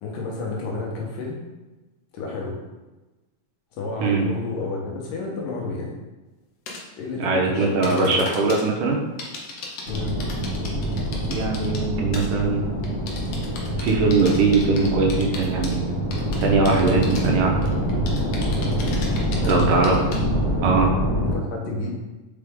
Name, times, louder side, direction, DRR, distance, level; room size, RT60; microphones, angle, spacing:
voice 1, 0.0-1.4 2.1-2.6 3.7-5.9 6.9-8.2 9.9-10.2 19.4-20.0 21.2-22.0, left 3 dB, 80° left, -1 dB, 2.8 m, -30 dB
sound 1, 6.7-6.8 7.8-8.6 9.2-11.9 12.1-12.4 12.8-15.7 16.1-17.3 17.6-20.2, left 4 dB, 65° left, 1.6 m, -36 dB
voice 2, 7.2-9.0 11.3-12.6 13.8-15.9 16.4-17.5 19.5-20.0 20.6-21.0, right 3 dB, 85° right, 0 dB, 2.5 m, -21 dB
sound 2, 9.9-21.3, equal, 40° right, 2.1 m, -25 dB
5.7 x 5.0 x 3.6 m, 1.1 s
omnidirectional pair, 3.8 m